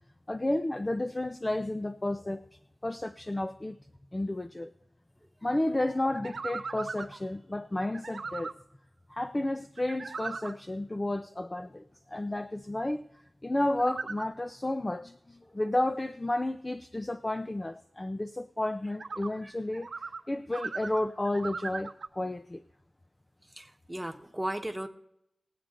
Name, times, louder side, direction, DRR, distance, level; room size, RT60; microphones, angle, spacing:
voice 1, 0.3-3.8 4.1-4.7 5.4-8.5 9.1-13.1 13.4-22.6, left 1 dB, 25° left, 0.5 m, -32 dB
sound 1, 6.1-7.2 7.9-8.5 9.8-10.5 13.8-14.3 18.9-19.3 19.7-20.2 20.5-22.1, right 4 dB, 80° right, 0.7 m, -38 dB
voice 2, 23.6-24.9, right 1 dB, 10° right, 1.2 m, -36 dB
20.0 x 8.4 x 3.8 m
wide cardioid pair, 85°, 0 cm